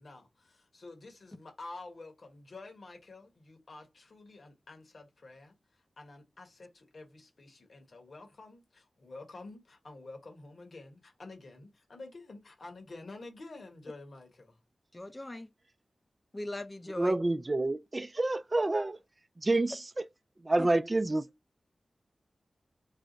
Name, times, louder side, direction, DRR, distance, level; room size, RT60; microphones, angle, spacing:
voice 1, 0.0-14.6, left 2 dB, 70° left, 1.4 m, -49 dB
voice 2, 14.9-15.5 16.3-17.2 20.6-20.7, left 1 dB, 30° left, 0.6 m, -39 dB
voice 3, 17.0-19.0 19.4-20.1 20.4-21.3, right 2 dB, 35° right, 0.3 m, -28 dB
4.8 x 2.1 x 3.9 m
cardioid pair, 45°, 0 cm